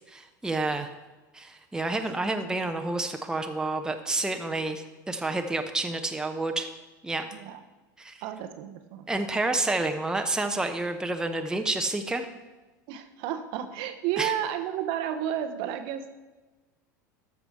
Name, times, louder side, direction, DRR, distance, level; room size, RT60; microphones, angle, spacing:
voice 1, 0.1-0.9 1.3-6.7 7.0-7.3 8.0-8.2 9.1-12.3 14.2-14.3, right 2 dB, 5° right, 5 dB, 0.9 m, -29 dB
voice 2, 8.2-9.1 12.9-16.1, right 10 dB, 50° right, 8 dB, 0.9 m, -32 dB
13.0 x 6.0 x 4.7 m, 1.2 s
figure-of-eight pair, 80°, 10 cm